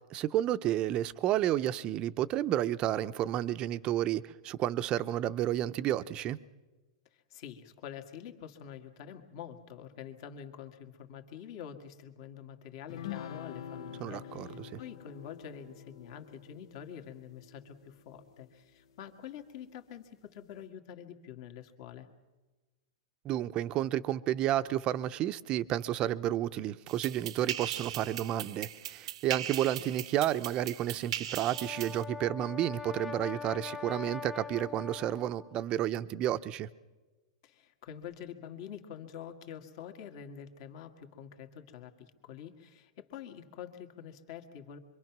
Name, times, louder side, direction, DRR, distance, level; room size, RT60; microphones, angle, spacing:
voice 1, 0.1-6.4 14.0-14.8 23.2-36.7, right 12 dB, 30° right, 13 dB, 0.6 m, -31 dB
voice 2, 7.1-22.1 37.4-44.8, left 9 dB, 50° left, 5 dB, 2.0 m, -46 dB
sound 1, 12.9-18.6, left 9 dB, 75° left, 0.9 m, -46 dB
sound 2, 26.9-32.0, right 11 dB, 70° right, 0.8 m, -39 dB
Brass instrument, 31.3-35.6, left 5 dB, 5° left, 0.8 m, -42 dB
25.5 x 23.5 x 6.0 m, 1.2 s
supercardioid pair, 150°, 3 cm